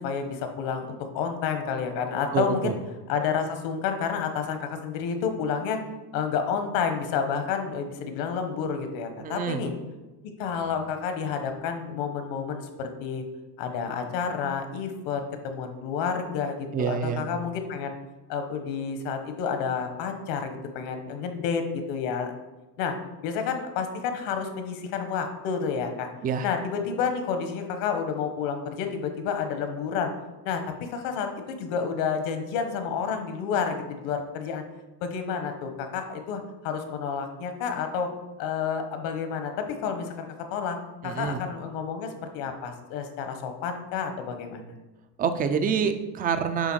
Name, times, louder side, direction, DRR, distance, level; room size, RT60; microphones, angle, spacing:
voice 1, 0.0-2.7 3.1-5.8 6.1-9.7 10.4-13.2 13.6-17.9 18.3-22.3 22.8-23.0 23.2-26.1 26.4-30.1 30.4-34.6 35.0-38.1 38.4-40.8 41.0-44.6, left 6 dB, 70° left, 6 dB, 1.3 m, -30 dB
voice 2, 2.3-2.8 9.2-9.7 16.7-17.2 26.2-26.5 41.0-41.4 45.2-46.7, right 6 dB, 20° right, 9 dB, 0.3 m, -27 dB
9.1 x 3.5 x 6.3 m, 1.1 s
cardioid pair, 155°, 45 cm